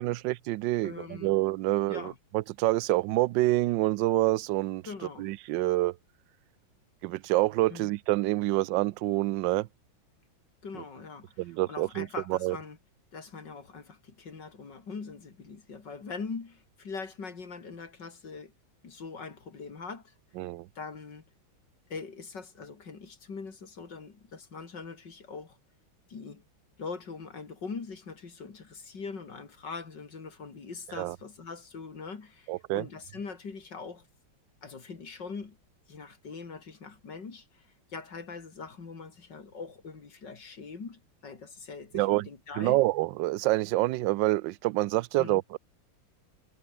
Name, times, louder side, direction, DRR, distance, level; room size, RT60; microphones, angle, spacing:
voice 1, 0.0-4.8 5.2-6.0 7.0-9.7 10.7-10.8 11.4-12.6 20.4-20.7 31.0-31.2 32.5-32.9 41.9-42.3 42.5-45.6, right 18 dB, 75° right, 1.2 m, -27 dB
voice 2, 0.8-1.3 1.9-2.2 4.9-5.3 7.7-7.9 10.6-12.8 13.1-18.5 18.8-20.1 20.8-21.3 21.9-25.6 26.1-26.4 26.8-34.1 34.6-35.6 35.9-42.8 45.2-45.4, left 4 dB, 60° left, 3.5 m, -42 dB
omnidirectional pair, 2.2 m